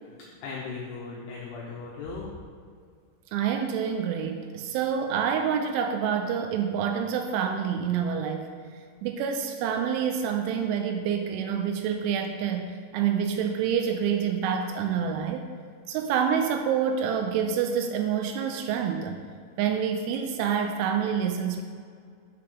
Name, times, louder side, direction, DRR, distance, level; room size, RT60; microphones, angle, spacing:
voice 1, 0.1-2.3, left 4 dB, 75° left, -4 dB, 2.6 m, -38 dB
voice 2, 3.3-8.5 9.0-15.5 15.9-19.2 19.6-21.6, right 7 dB, 85° right, 5 dB, 3.0 m, -27 dB
9.7 x 7.0 x 3.6 m, 2.1 s
omnidirectional pair, 5.6 m